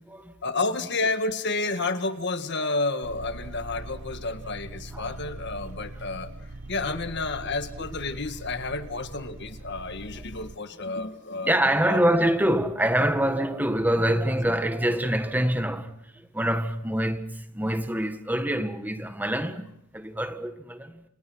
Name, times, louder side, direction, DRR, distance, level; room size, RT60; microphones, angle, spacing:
voice 1, 0.4-6.3 6.7-12.0, left 3 dB, 50° left, 1.8 m, -30 dB
sound 1, 3.0-10.6, right 2 dB, 55° right, 1.0 m, -41 dB
voice 2, 11.4-21.1, right 1 dB, 10° right, 1.5 m, -25 dB
29.5 x 28.0 x 6.3 m
head